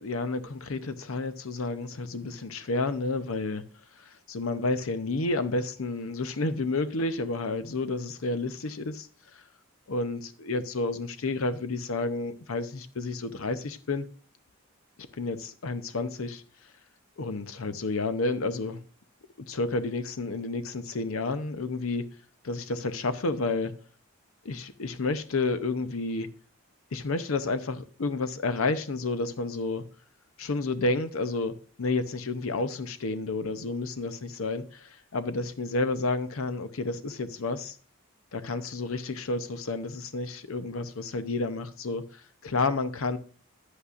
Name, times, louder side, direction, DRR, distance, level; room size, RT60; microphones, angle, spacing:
voice 1, 0.0-3.6 4.0-9.1 9.3-9.4 9.9-14.1 15.1-16.4 17.2-18.8 19.4-22.1 22.4-23.7 24.4-26.3 26.9-29.8 30.4-37.8 38.3-43.2, left 3 dB, 80° left, 0.7 m, -30 dB
9.8 x 8.2 x 2.5 m
head